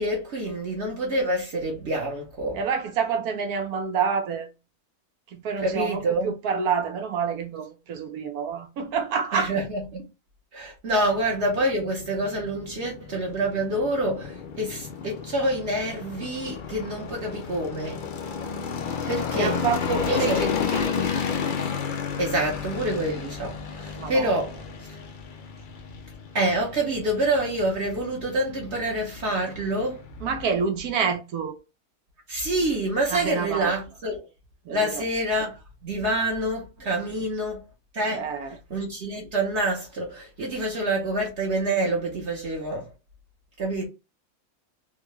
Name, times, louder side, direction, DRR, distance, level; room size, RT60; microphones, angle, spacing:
voice 1, 0.0-2.6 5.6-6.3 9.3-10.0 10.5-18.0 19.1-19.6 20.0-20.5 22.2-24.7 26.3-30.0 32.3-34.2 34.7-37.6 37.9-38.3 38.7-42.9 43.6-43.9, right 1 dB, 50° right, 1.2 m, -27 dB
voice 2, 2.5-4.5 5.3-9.5 18.9-19.0 19.3-21.1 24.0-24.4 30.2-31.5 33.1-33.7 34.7-35.0 38.1-38.6, right 6 dB, 85° right, 1.3 m, -28 dB
sound 1, 11.1-30.5, left 7 dB, 75° left, 0.4 m, -32 dB
3.6 x 2.3 x 3.0 m
omnidirectional pair, 1.5 m